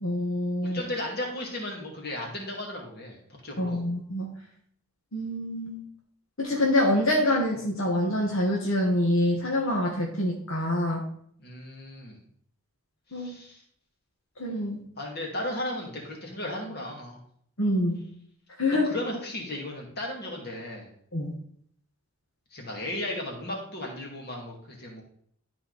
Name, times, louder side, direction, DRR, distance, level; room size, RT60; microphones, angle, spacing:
voice 1, 0.0-0.8 3.6-4.3 5.1-5.8 6.4-11.0 13.1-13.3 14.4-14.8 17.6-18.0 18.6-18.9 21.1-21.3, left 1 dB, 70° left, -1 dB, 1.4 m, -26 dB
voice 2, 0.6-3.8 11.4-12.2 13.1-13.6 15.0-17.2 18.7-20.9 22.5-25.0, left 1 dB, 45° left, -1 dB, 2.4 m, -35 dB
12.5 x 4.4 x 4.1 m, 0.65 s
head